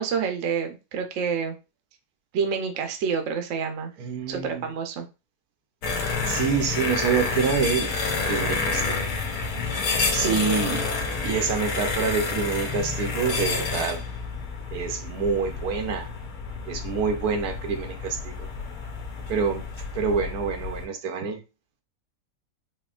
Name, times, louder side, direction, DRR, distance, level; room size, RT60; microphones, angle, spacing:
voice 1, 0.0-1.6 2.3-3.9 4.3-5.1 10.2-10.7, right 6 dB, 60° right, 0.9 m, -28 dB
voice 2, 4.0-4.7 6.3-7.9 8.2-9.0 10.1-14.0 14.7-16.1 16.7-18.5 19.3-19.6 19.9-21.4, right 5 dB, 80° right, 1.2 m, -27 dB
sound 1, 5.8-20.9, left 4 dB, 75° left, 1.3 m, -29 dB
4.3 x 3.0 x 2.4 m
omnidirectional pair, 1.6 m